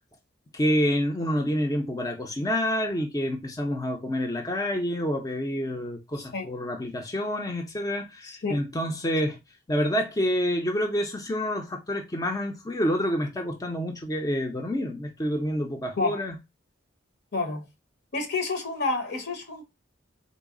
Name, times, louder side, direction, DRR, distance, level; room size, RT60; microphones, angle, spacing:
voice 1, 0.5-9.4 9.7-16.3, equal, 20° left, 0.5 m, -28 dB
voice 2, 6.2-6.5 8.2-8.6 16.0-16.2 17.3-17.6 18.1-19.6, left 3 dB, 60° left, 0.8 m, -29 dB
3.9 x 2.0 x 3.6 m
head